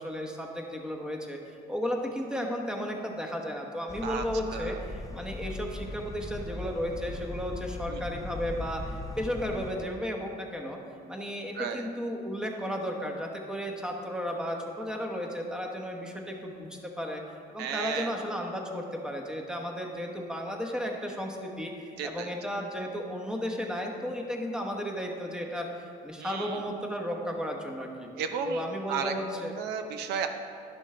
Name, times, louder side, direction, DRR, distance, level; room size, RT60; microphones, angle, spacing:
voice 1, 0.0-10.8 11.1-17.2 17.5-28.1 28.4-29.5, equal, 5° right, 1 dB, 1.0 m, -34 dB
sound 1, 3.9-9.7, left 2 dB, 20° left, 0.5 m, -39 dB
voice 2, 4.5-4.8 7.9-8.0 11.5-11.9 17.6-18.1 22.0-22.3 26.2-26.6 28.2-28.6 28.9-29.1 29.6-30.3, right 7 dB, 80° right, 7 dB, 0.6 m, -33 dB
11.5 x 6.2 x 3.3 m, 2.4 s
cardioid pair, 110°, 17 cm